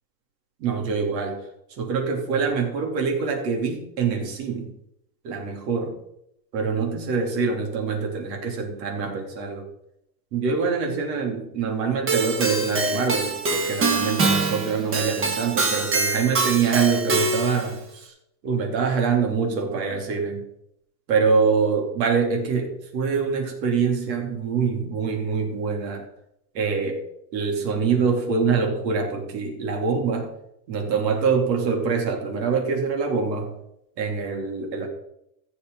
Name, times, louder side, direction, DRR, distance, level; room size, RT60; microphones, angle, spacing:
voice 1, 0.6-1.4 1.7-4.7 5.2-5.9 6.5-9.7 10.3-18.1 18.4-20.4 21.1-26.0 26.5-27.0 27.3-30.3 30.7-33.5 34.0-34.9, right 5 dB, 85° right, 2 dB, 3.2 m, -25 dB
Keyboard (musical), 12.1-17.7, right 3 dB, 25° right, 1.7 m, -24 dB
15.0 x 7.0 x 3.9 m, 0.78 s
supercardioid pair, 145°, 49 cm